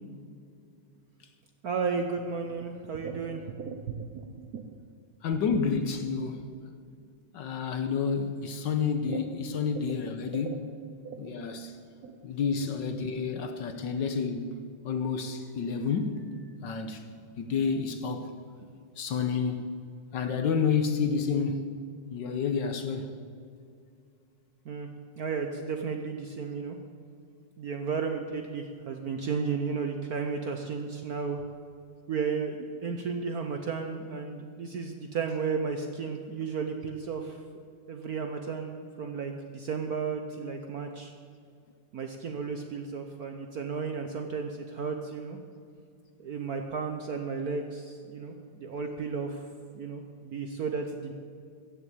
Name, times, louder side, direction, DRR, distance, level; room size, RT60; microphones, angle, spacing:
voice 1, 1.6-4.6 9.1-9.2 9.9-10.0 10.3-10.6 11.0-11.5 12.0-12.1 24.6-24.9 25.2-26.8 27.6-31.4 32.1-37.4 37.9-41.1 41.9-45.4 46.2-49.4 49.7-51.1, right 5 dB, 60° right, 5 dB, 1.0 m, -34 dB
voice 2, 5.2-6.4 7.3-10.7 11.2-11.7 12.2-14.5 14.8-16.2 16.6-17.1 17.4-18.3 19.0-19.7 20.1-21.6 22.1-23.1, left 5 dB, 65° left, 7 dB, 1.3 m, -29 dB
14.5 x 7.1 x 8.4 m, 2.3 s
omnidirectional pair, 2.4 m